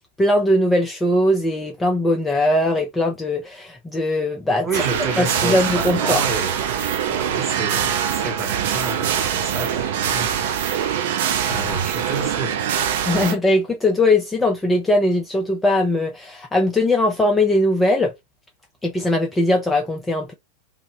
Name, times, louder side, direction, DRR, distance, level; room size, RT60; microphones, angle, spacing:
voice 1, 0.2-4.7 5.2-6.2 13.0-18.1 18.8-20.3, left 1 dB, 10° left, 0.4 m, -20 dB
voice 2, 4.6-12.8, right 3 dB, 20° right, 1.0 m, -30 dB
sound 1, 4.7-13.3, right 9 dB, 55° right, 0.4 m, -23 dB
2.7 x 2.0 x 3.2 m
figure-of-eight pair, 90°, 0 cm